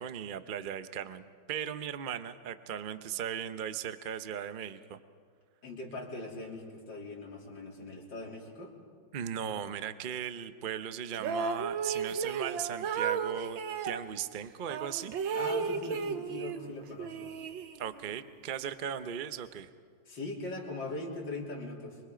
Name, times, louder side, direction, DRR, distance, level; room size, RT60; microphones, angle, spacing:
voice 1, 0.0-5.0 9.1-13.6 13.8-15.2 17.8-19.7, right 9 dB, 70° right, 11 dB, 0.4 m, -37 dB
voice 2, 5.6-8.8 15.3-17.3 20.1-22.0, left 2 dB, 70° left, -2 dB, 3.8 m, -40 dB
sound 1, 11.1-14.0 14.7-16.7 17.0-18.1, right 6 dB, 90° right, 1.8 m, -34 dB
26.0 x 24.5 x 5.1 m, 2.1 s
omnidirectional pair, 2.0 m